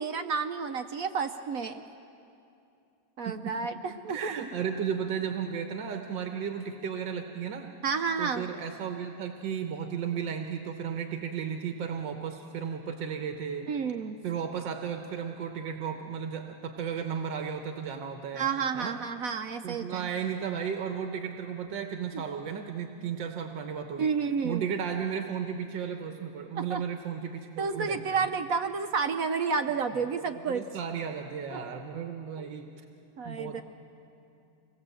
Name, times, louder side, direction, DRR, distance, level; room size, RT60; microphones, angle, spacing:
voice 1, 0.0-1.8 3.2-4.4 7.8-8.5 13.7-14.2 18.3-20.1 22.1-22.2 24.0-24.6 26.5-26.8 27.6-30.6 31.5-31.8 32.4-32.5 33.2-33.6, right 5 dB, 60° right, 8 dB, 1.0 m, -31 dB
voice 2, 4.1-7.7 8.2-13.7 14.2-18.5 18.7-19.0 19.6-24.1 24.4-28.3 30.1-32.7 33.2-33.6, right 7 dB, 90° right, 5 dB, 1.8 m, -34 dB
25.5 x 19.0 x 7.8 m, 2.7 s
omnidirectional pair, 2.0 m